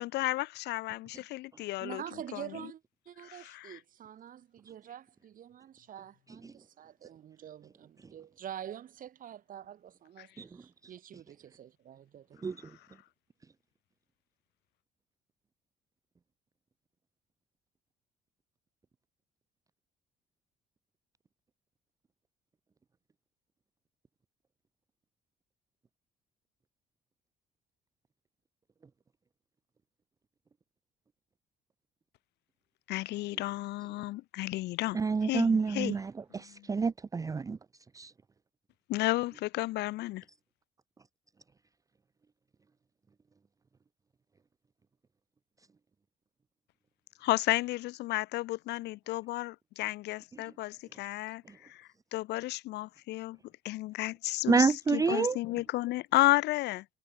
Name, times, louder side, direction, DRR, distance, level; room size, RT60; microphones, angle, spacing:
voice 1, 0.0-2.0 2.3-2.4 3.2-3.8 10.2-10.3 32.9-36.0 36.5-36.7 38.9-40.2 47.2-53.4 53.6-56.8, left 18 dB, 85° left, 3.2 m, -32 dB
voice 2, 1.8-12.3, right 10 dB, 55° right, 3.8 m, -46 dB
voice 3, 34.9-37.6 37.9-38.1 54.5-55.4, right 5 dB, 20° right, 0.6 m, -28 dB
cardioid pair, 110°, 17 cm